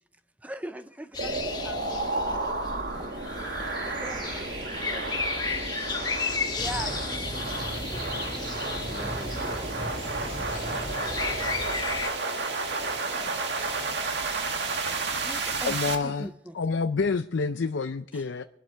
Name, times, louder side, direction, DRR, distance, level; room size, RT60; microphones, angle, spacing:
voice 1, 0.4-2.5 2.9-3.3 3.8-5.7 6.0-6.1 6.5-9.7 13.1-13.2 15.2-16.5 18.1-18.2, equal, 10° right, 0.5 m, -43 dB
sound 1, 1.1-12.1, left 4 dB, 20° left, 1.3 m, -34 dB
sound 2, 1.2-16.0, right 3 dB, 65° right, 2.0 m, -32 dB
sound 3, 6.6-11.7, right 1 dB, 30° right, 1.7 m, -38 dB
voice 2, 10.2-13.9 14.2-15.0, left 3 dB, 55° left, 3.3 m, -50 dB
voice 3, 15.6-16.3 16.5-18.4, left 4 dB, 80° left, 0.5 m, -28 dB
23.0 x 12.0 x 3.4 m
head